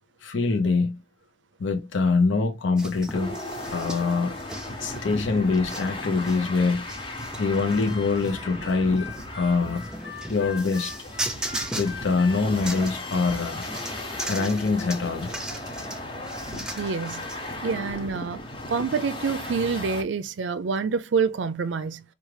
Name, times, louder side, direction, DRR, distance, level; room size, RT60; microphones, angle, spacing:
voice 1, 0.2-1.0 1.6-3.4 3.7-4.3 4.8-7.0 7.4-9.9 10.3-11.1 11.7-13.6 14.3-15.3, left 4 dB, 85° left, 0.6 m, -24 dB
sound 1, 2.8-17.6, right 1 dB, 5° right, 0.4 m, -38 dB
sound 2, 3.1-20.0, left 1 dB, 30° left, 0.8 m, -36 dB
Harmonica, 7.9-13.4, left 4 dB, 60° left, 1.0 m, -42 dB
voice 2, 16.8-17.3 17.6-18.4 18.7-22.0, right 5 dB, 80° right, 0.4 m, -27 dB
4.8 x 2.4 x 3.2 m
head